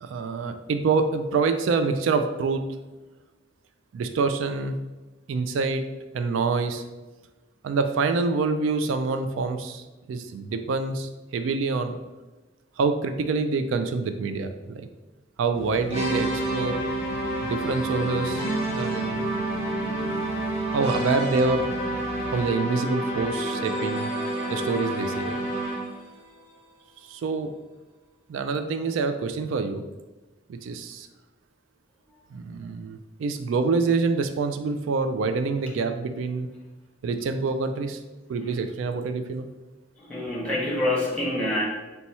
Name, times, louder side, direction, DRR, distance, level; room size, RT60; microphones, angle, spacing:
voice 1, 0.0-2.6 3.9-4.7 5.3-5.9 6.1-6.8 7.6-12.0 12.8-14.9 15.4-16.8 17.4-18.4 18.7-19.3 20.7-21.7 22.3-24.1 24.5-25.4 27.1-27.5 28.3-29.8 30.5-31.1 32.3-36.5 37.0-38.0 38.3-39.5, right 4 dB, 80° right, 8 dB, 0.3 m, -26 dB
sound 1, 15.5-22.5, left 1 dB, 85° left, 0.5 m, -39 dB
sound 2, 15.9-26.0, right 1 dB, 30° right, 1.3 m, -29 dB
sound 3, 17.6-19.9 23.0-27.5, left 2 dB, 60° right, 1.1 m, -45 dB
voice 2, 40.0-41.7, left 1 dB, 5° left, -5 dB, 1.1 m, -26 dB
4.1 x 2.3 x 4.2 m, 1.2 s
head